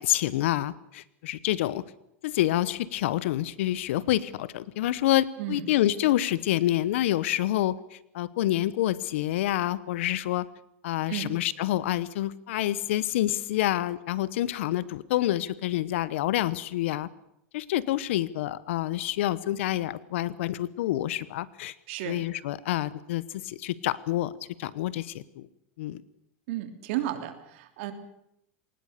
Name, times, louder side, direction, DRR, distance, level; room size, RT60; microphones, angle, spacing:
voice 1, 0.0-1.8 2.2-10.5 10.8-17.1 17.5-21.7 22.1-24.3 24.6-25.5 25.8-26.0, left 14 dB, 75° left, 18 dB, 1.1 m, -27 dB
voice 2, 5.4-5.7 11.1-11.4 21.9-22.2 26.5-27.9, right 11 dB, 70° right, 8 dB, 3.0 m, -33 dB
22.5 x 19.5 x 6.8 m, 0.79 s
supercardioid pair, 125°, 7 cm